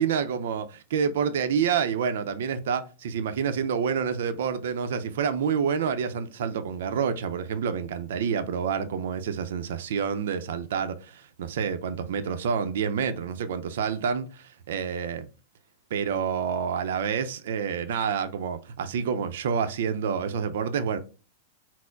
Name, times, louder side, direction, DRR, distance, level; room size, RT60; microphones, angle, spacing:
voice 1, 0.0-15.3 15.9-21.0, right 7 dB, 75° right, 0.5 m, -28 dB
4.4 x 2.0 x 4.5 m
hypercardioid pair, 135°, 0 cm